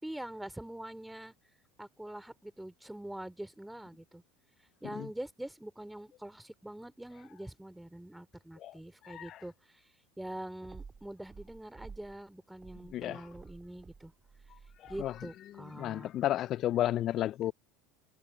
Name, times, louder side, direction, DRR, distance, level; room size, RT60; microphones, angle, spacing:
voice 1, 0.0-1.3 1.8-4.2 4.8-9.8 10.2-14.1 14.9-16.1, right 1 dB, 5° right, 3.3 m, -44 dB
voice 2, 9.0-9.4 12.9-13.2 14.8-15.1 15.8-17.5, left 13 dB, 50° left, 0.3 m, -32 dB
sound 1, 10.6-12.2 12.5-15.3, right 5 dB, 25° right, 2.2 m, -52 dB
hypercardioid pair, 90°, 0 cm